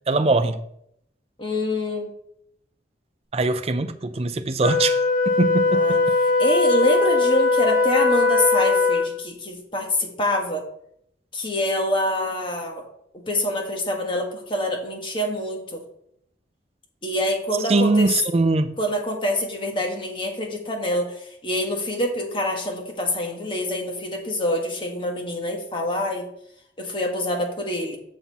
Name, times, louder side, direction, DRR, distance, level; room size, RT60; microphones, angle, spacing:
voice 1, 0.1-0.6 3.3-5.0 5.4-6.0 17.7-18.8, right 3 dB, 35° right, 0.5 m, -21 dB
voice 2, 1.4-2.1 5.7-6.0 6.4-10.6 11.3-12.8 13.1-15.8 17.0-18.1 18.8-26.3 26.8-28.0, left 1 dB, 25° left, 1.4 m, -26 dB
Wind instrument woodwind instrument, 4.6-9.2, left 3 dB, 45° left, 1.1 m, -20 dB
7.3 x 5.6 x 4.1 m
head